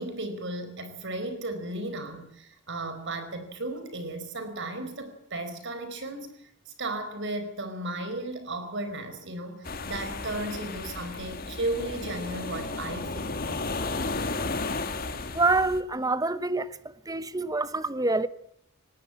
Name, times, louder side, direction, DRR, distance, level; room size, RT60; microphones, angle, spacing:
voice 1, 0.0-6.3 6.8-13.4, right 2 dB, 55° right, 4.4 m, -35 dB
sound 1, 9.6-15.8, left 3 dB, 45° left, 1.7 m, -33 dB
voice 2, 15.3-16.8 17.1-18.3, right 3 dB, 15° right, 0.9 m, -26 dB
19.0 x 18.0 x 8.6 m
head